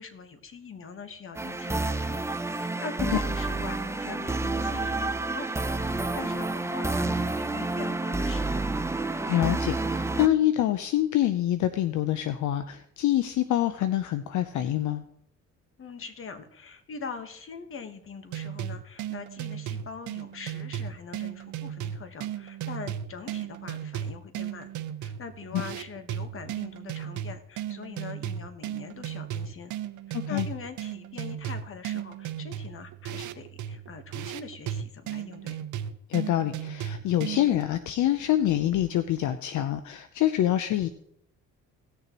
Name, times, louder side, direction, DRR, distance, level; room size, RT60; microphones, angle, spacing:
voice 1, 0.0-2.2 2.6-8.7 15.8-24.7 25.0-29.7 30.1-35.6, left 5 dB, 45° left, 9 dB, 1.3 m, -42 dB
sound 1, 1.3-10.3, right 2 dB, 10° right, 0.5 m, -29 dB
voice 2, 9.3-15.0 30.1-30.5 36.1-40.9, left 12 dB, 75° left, 11 dB, 0.6 m, -26 dB
sound 2, 18.3-37.6, right 10 dB, 75° right, 0.7 m, -35 dB
17.5 x 6.8 x 3.0 m, 0.71 s
cardioid pair, 90°, 30 cm